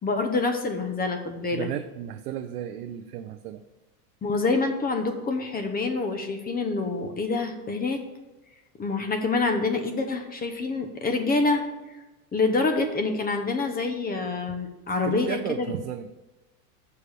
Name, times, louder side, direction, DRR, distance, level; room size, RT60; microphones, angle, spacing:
voice 1, 0.0-1.7 4.2-8.0 8.8-11.6 12.3-15.7, left 3 dB, 20° left, 6 dB, 0.9 m, -26 dB
voice 2, 1.5-3.6 14.9-16.1, right 11 dB, 80° right, 5 dB, 0.7 m, -34 dB
6.9 x 4.9 x 6.8 m, 1.1 s
supercardioid pair, 120°, 46 cm